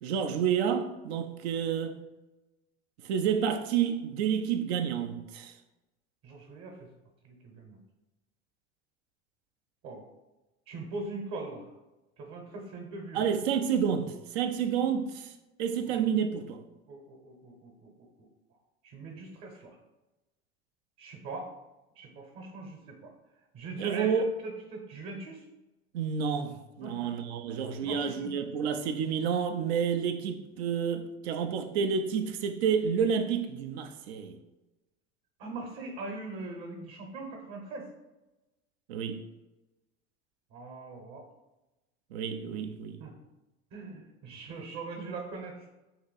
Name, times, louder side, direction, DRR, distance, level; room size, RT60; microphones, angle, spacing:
voice 1, 0.0-2.0 3.0-5.5 13.1-15.3 15.6-16.6 23.8-24.3 25.9-34.4 38.9-39.2 42.1-43.0, right 7 dB, 80° right, 0.5 m, -29 dB
voice 2, 6.2-6.9 7.2-7.8 9.8-10.0 10.7-11.7 12.2-13.2 15.9-16.3 16.9-17.9 18.8-19.8 21.0-21.5 22.0-23.1 23.5-24.1 24.4-25.4 26.8-27.1 27.8-28.4 35.4-37.9 40.5-41.2 43.0-43.1 43.7-45.7, right 3 dB, 50° right, 0.9 m, -41 dB
2.8 x 2.7 x 4.0 m
hypercardioid pair, 95°, 32 cm